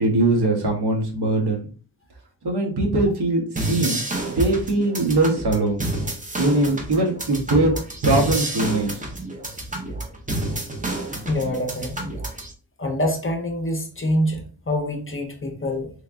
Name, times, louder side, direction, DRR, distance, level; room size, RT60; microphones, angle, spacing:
voice 1, 0.0-1.6 2.4-5.8 6.4-7.8 8.0-9.1, right 2 dB, 65° right, 1.1 m, -21 dB
sound 1, 3.5-12.5, right 1 dB, 20° right, 0.8 m, -29 dB
voice 2, 11.1-12.1 12.8-15.9, left 1 dB, 30° left, 0.6 m, -25 dB
3.5 x 3.2 x 2.4 m
wide cardioid pair, 145°, 42 cm